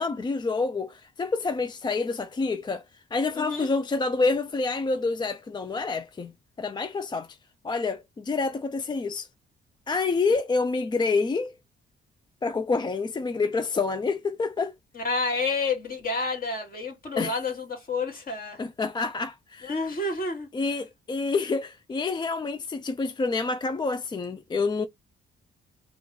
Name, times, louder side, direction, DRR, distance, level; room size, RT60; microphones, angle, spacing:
voice 1, 0.0-2.8 3.1-6.3 6.6-7.4 7.6-9.3 9.9-11.5 12.4-14.7 17.2-17.3 18.6-19.8 20.5-24.9, left 4 dB, 20° left, 0.4 m, -27 dB
voice 2, 3.3-3.7 14.9-18.6 19.6-20.5, left 3 dB, 50° left, 2.1 m, -29 dB
3.8 x 2.3 x 3.1 m
cardioid pair, 90°, 20 cm